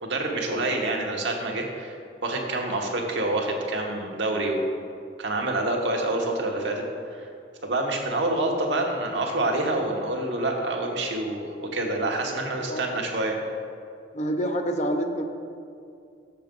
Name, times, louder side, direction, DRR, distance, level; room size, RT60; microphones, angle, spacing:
voice 1, 0.0-2.0 2.2-4.7 5.2-7.3 7.6-13.4, right 2 dB, 75° right, 1 dB, 1.1 m, -27 dB
voice 2, 14.1-15.3, equal, 40° left, 5 dB, 0.6 m, -27 dB
6.7 x 6.7 x 5.2 m, 2.4 s
head